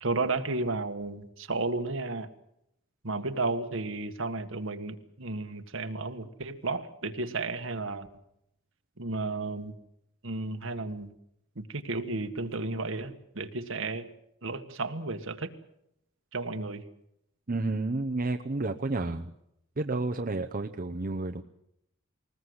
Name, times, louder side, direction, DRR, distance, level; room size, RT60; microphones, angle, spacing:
voice 1, 0.0-2.3 3.0-8.1 9.0-9.8 10.2-11.1 11.5-14.1 14.4-15.5 16.3-16.8, right 3 dB, 70° right, 8 dB, 1.7 m, -33 dB
voice 2, 17.5-19.3 19.8-21.4, right 2 dB, 45° right, 5 dB, 0.9 m, -31 dB
21.0 x 20.0 x 8.0 m, 0.79 s
head